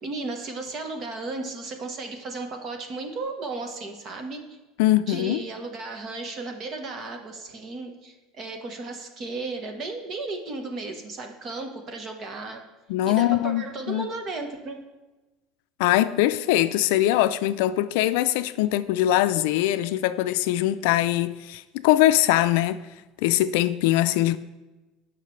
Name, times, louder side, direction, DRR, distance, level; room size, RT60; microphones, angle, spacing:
voice 1, 0.0-4.4 5.1-12.6 13.0-14.8, right 3 dB, 30° right, 1.1 m, -34 dB
voice 2, 4.8-5.4 12.9-14.1 15.8-22.8 23.2-24.4, left 14 dB, 75° left, 0.4 m, -22 dB
17.0 x 5.7 x 3.2 m
cardioid pair, 165°, 0 cm